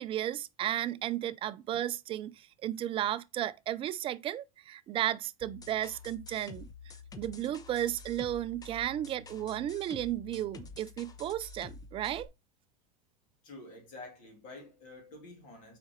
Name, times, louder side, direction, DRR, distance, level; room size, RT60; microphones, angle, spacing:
voice 1, 0.0-6.7 7.2-12.3, right 12 dB, 30° right, 0.5 m, -34 dB
sound 1, 5.4-12.3, left 4 dB, 20° left, 0.7 m, -49 dB
voice 2, 13.4-15.8, left 2 dB, 45° left, 3.0 m, -49 dB
7.0 x 5.0 x 3.1 m
supercardioid pair, 130°, 18 cm